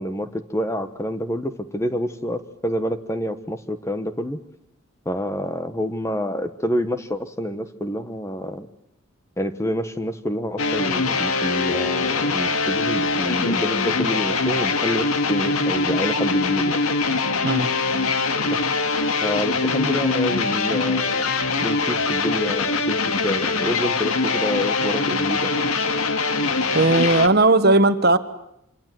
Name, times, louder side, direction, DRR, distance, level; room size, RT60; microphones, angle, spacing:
voice 1, 0.0-4.4 5.0-8.7 9.4-16.8 18.4-18.7 19.2-21.2 21.6-25.7, equal, 15° left, 10 dB, 1.2 m, -27 dB
sound 1, 10.6-27.3, left 4 dB, 85° left, 2.0 m, -23 dB
voice 2, 26.7-28.2, right 2 dB, 45° right, 11 dB, 1.4 m, -16 dB
27.0 x 24.5 x 7.7 m, 0.79 s
head